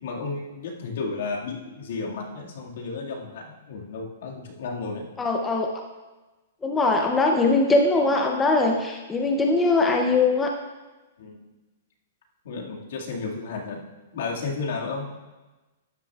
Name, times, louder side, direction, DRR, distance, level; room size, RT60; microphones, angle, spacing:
voice 1, 0.0-5.1 11.2-11.4 12.4-13.8 14.1-15.1, left 4 dB, 60° left, -1 dB, 1.9 m, -33 dB
voice 2, 5.2-5.7 6.6-10.5, left 3 dB, 10° left, 1 dB, 0.5 m, -21 dB
12.5 x 10.5 x 2.4 m, 1.2 s
hypercardioid pair, 175°, 0 cm